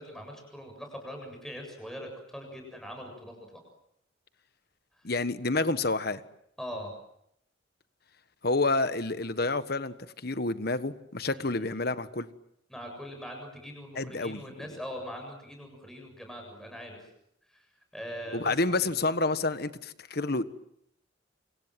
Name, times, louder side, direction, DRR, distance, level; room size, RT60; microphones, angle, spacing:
voice 1, 0.0-3.6 5.0-5.1 6.6-7.0 11.3-11.7 12.7-17.1 17.5-17.7 17.9-18.5 18.8-18.9, equal, ahead, 3 dB, 7.4 m, -42 dB
voice 2, 5.0-6.2 8.4-9.9 10.2-12.3 13.9-14.4 18.3-20.4, left 3 dB, 50° left, 12 dB, 1.4 m, -28 dB
28.5 x 26.5 x 7.7 m, 0.75 s
head